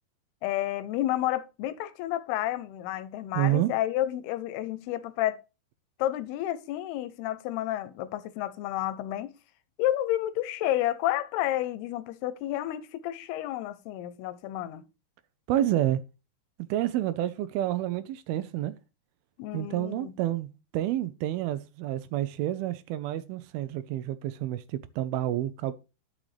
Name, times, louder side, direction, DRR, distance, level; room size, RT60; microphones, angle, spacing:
voice 1, 0.4-5.4 6.0-9.3 9.8-14.8 19.4-20.1, left 13 dB, 85° left, 2.6 m, -30 dB
voice 2, 3.3-3.7 15.5-16.0 16.6-18.7 19.5-20.5 20.7-25.7, right 13 dB, 80° right, 2.4 m, -29 dB
11.0 x 6.3 x 3.3 m
omnidirectional pair, 4.7 m